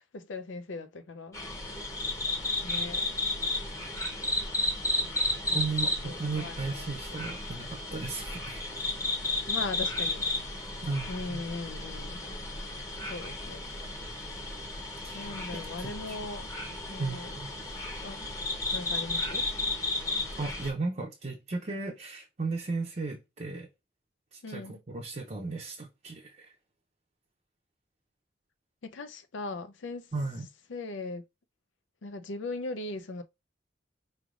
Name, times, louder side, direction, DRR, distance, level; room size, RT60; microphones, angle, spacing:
voice 1, 0.0-1.4 2.6-3.0 6.0-6.9 9.5-10.3 11.1-12.2 13.1-13.6 15.1-16.5 16.9-17.3 18.0-18.3 18.7-19.5 24.4-24.7 28.8-30.1 30.7-31.2 32.0-33.2, left 3 dB, 85° left, 0.5 m, -39 dB
sound 1, 1.3-20.7, left 2 dB, 15° left, 0.9 m, -33 dB
voice 2, 5.5-8.8 10.8-11.4 15.0-15.3 15.6-16.2 17.0-17.5 20.4-23.7 24.3-26.5 30.1-30.5, right 3 dB, 40° right, 0.6 m, -35 dB
4.9 x 3.2 x 2.4 m
head